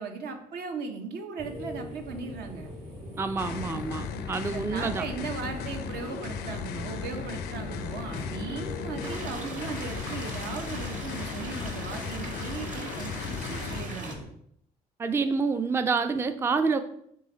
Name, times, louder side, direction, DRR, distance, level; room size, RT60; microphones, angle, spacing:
voice 1, 0.0-2.7 4.4-14.2, right 5 dB, 65° right, 5 dB, 0.8 m, -37 dB
sound 1, 1.4-14.2, equal, 85° right, 1.7 m, -42 dB
voice 2, 3.2-5.0 15.0-16.8, right 4 dB, 15° right, 9 dB, 0.3 m, -27 dB
sound 2, 3.4-13.8, left 7 dB, 70° left, 0.4 m, -36 dB
sound 3, 9.0-14.1, right 2 dB, 45° right, 1.3 m, -41 dB
3.8 x 3.2 x 3.9 m, 0.71 s
hypercardioid pair, 55°, 17 cm